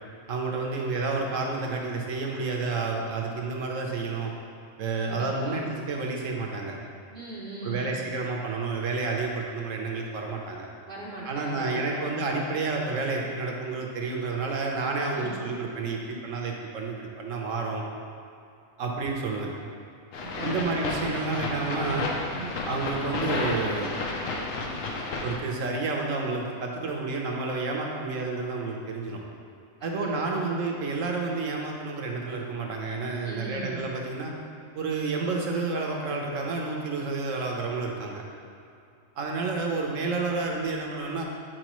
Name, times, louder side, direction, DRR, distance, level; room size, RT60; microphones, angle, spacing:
voice 1, 0.3-4.3 4.8-6.7 7.6-10.7 11.3-17.9 18.8-19.5 20.4-22.1 22.7-23.9 25.2-29.2 29.8-34.3 34.7-38.2 39.2-41.2, right 3 dB, 75° right, 0 dB, 1.2 m, -30 dB
voice 2, 5.0-5.6 7.1-7.9 10.9-12.1 15.1-15.4 20.2-20.7 22.3-22.6 29.8-30.6 33.2-33.9, right 2 dB, 50° right, -5 dB, 0.8 m, -39 dB
sound 1, 20.1-25.4, left 3 dB, 75° left, 1.1 m, -32 dB
8.9 x 4.5 x 3.1 m, 2.5 s
omnidirectional pair, 1.4 m